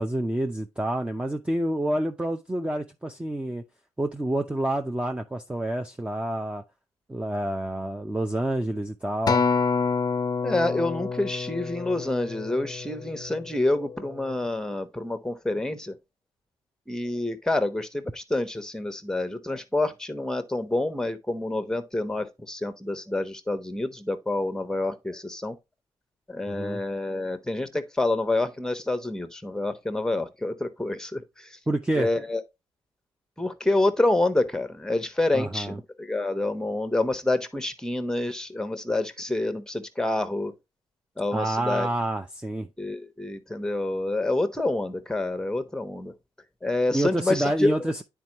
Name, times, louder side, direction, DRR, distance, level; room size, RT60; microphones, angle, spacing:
voice 1, 0.0-3.6 4.0-6.6 7.1-9.4 26.5-26.8 31.7-32.1 35.3-35.8 41.3-42.7 46.9-48.0, right 1 dB, 10° right, 0.6 m, -28 dB
Acoustic guitar, 9.3-13.7 14.3-14.5, left 5 dB, 40° left, 0.5 m, -28 dB
voice 2, 10.4-15.9 16.9-25.6 26.3-31.5 32.0-32.4 33.4-40.5 41.2-41.9 42.8-46.1 46.6-47.7, left 2 dB, 5° left, 1.0 m, -27 dB
9.3 x 4.6 x 2.9 m
cardioid pair, 75°, 11 cm